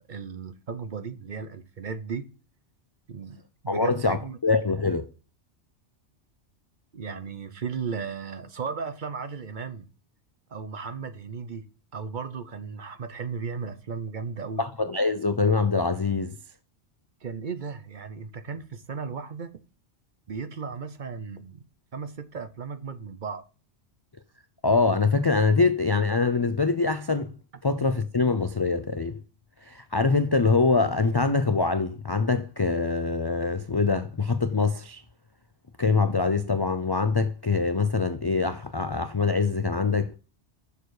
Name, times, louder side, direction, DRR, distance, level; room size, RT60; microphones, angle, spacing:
voice 1, 0.1-2.3 3.1-3.4 3.6-4.4 4.6-4.7 6.9-9.9 10.5-11.6 11.9-14.6 17.2-19.5 20.3-21.6 21.9-23.4, right 5 dB, 50° right, 0.8 m, -35 dB
voice 2, 3.7-5.1 14.6-16.3 24.6-27.3 27.6-29.2 29.7-35.0 35.8-40.2, left 4 dB, 35° left, 0.3 m, -24 dB
6.8 x 6.7 x 4.8 m
omnidirectional pair, 1.2 m